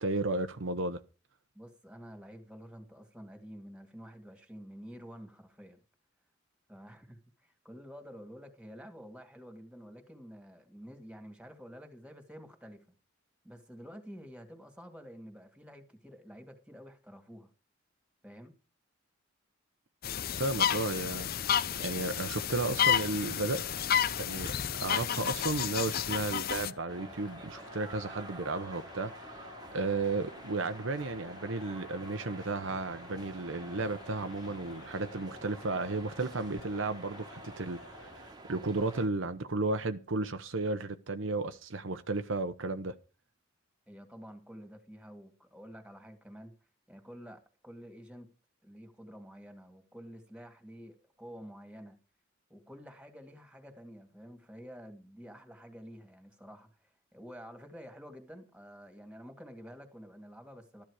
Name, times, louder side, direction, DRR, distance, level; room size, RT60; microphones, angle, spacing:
voice 1, 0.0-1.0 20.4-21.3 21.8-23.6 24.2-29.5 29.7-42.9, right 3 dB, 70° right, 0.9 m, -34 dB
voice 2, 1.5-5.8 6.7-12.8 13.4-17.5 18.2-18.5 43.9-46.6 46.9-48.3 48.6-52.0 52.5-60.8, equal, 5° right, 2.2 m, -49 dB
sound 1, 20.0-26.7, left 9 dB, 50° left, 0.6 m, -31 dB
Crowd, 22.3-38.4, left 4 dB, 65° left, 1.3 m, -52 dB
sound 2, 26.9-39.1, right 2 dB, 20° right, 1.5 m, -49 dB
13.5 x 10.5 x 4.9 m
head